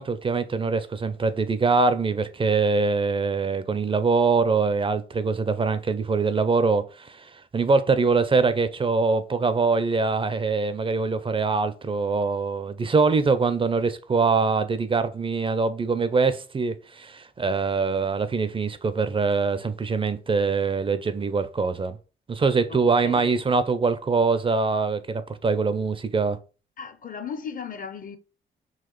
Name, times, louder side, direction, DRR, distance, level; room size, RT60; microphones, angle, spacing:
voice 1, 0.0-22.0 22.3-26.4, right 4 dB, 25° right, 0.4 m, -23 dB
voice 2, 22.7-23.4 26.8-28.2, left 6 dB, 40° left, 0.5 m, -36 dB
4.0 x 2.4 x 3.0 m
cardioid pair, 70°, 21 cm